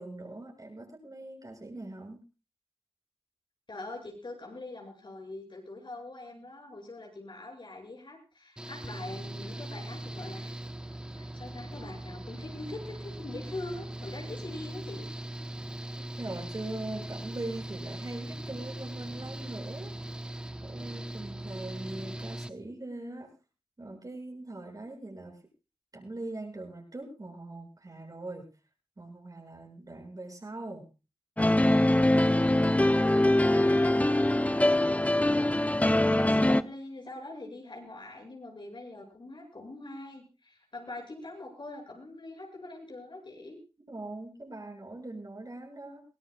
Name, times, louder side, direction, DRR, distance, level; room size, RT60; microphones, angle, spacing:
voice 1, 0.0-2.2 16.0-20.4 20.6-23.3 23.8-25.4 25.9-28.5 29.0-30.9 43.9-46.0, right 2 dB, 40° right, 1 dB, 7.3 m, -41 dB
voice 2, 3.7-10.5 11.1-15.1 32.4-35.1 35.4-43.6, left 2 dB, 55° left, 1 dB, 8.0 m, -43 dB
Engine / Mechanical fan, 8.6-22.5, right 1 dB, 10° right, 1.2 m, -40 dB
sound 1, 31.4-36.6, left 1 dB, 15° left, 0.8 m, -23 dB
23.5 x 18.0 x 2.5 m, 0.32 s
cardioid pair, 60°, 10 cm